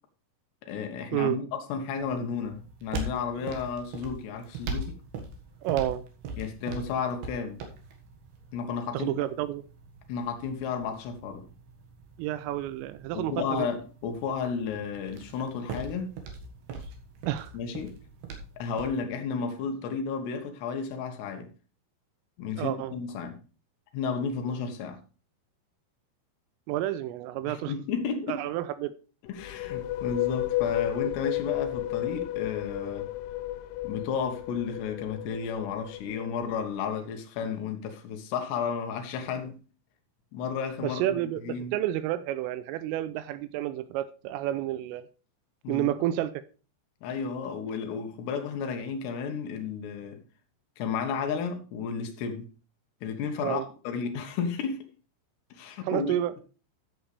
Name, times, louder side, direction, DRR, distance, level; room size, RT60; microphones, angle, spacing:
voice 1, 0.6-5.0 6.4-7.6 8.5-9.1 10.1-11.5 13.1-16.1 17.5-18.0 18.6-21.5 22.4-23.4 23.9-25.0 27.5-28.4 29.3-33.1 33.8-39.6 40.3-41.7 45.6-45.9 47.0-50.2 50.8-52.5 53.0-54.8 55.5-56.1, left 6 dB, 70° left, 3.0 m, -33 dB
sound 1, 2.0-19.0, right 3 dB, 60° right, 3.1 m, -42 dB
voice 2, 5.6-6.0 8.9-9.6 12.2-13.7 17.3-17.5 22.6-22.9 26.7-27.7 28.3-28.9 40.8-45.1 45.7-46.3 53.4-53.6 55.8-56.3, right 13 dB, 85° right, 3.1 m, -30 dB
sound 2, 29.3-36.9, left 15 dB, 85° left, 3.3 m, -33 dB
14.0 x 7.9 x 3.3 m
omnidirectional pair, 5.9 m